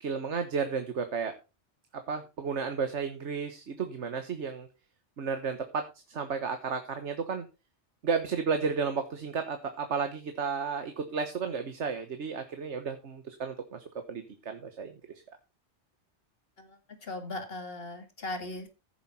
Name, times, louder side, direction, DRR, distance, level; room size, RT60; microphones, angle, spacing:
voice 1, 0.0-1.3 1.9-4.7 5.2-7.4 8.0-14.9, right 5 dB, 85° right, 8 dB, 1.5 m, -33 dB
voice 2, 16.6-18.7, left 2 dB, 55° left, 7 dB, 2.3 m, -39 dB
15.0 x 7.5 x 4.2 m, 0.29 s
omnidirectional pair, 1.2 m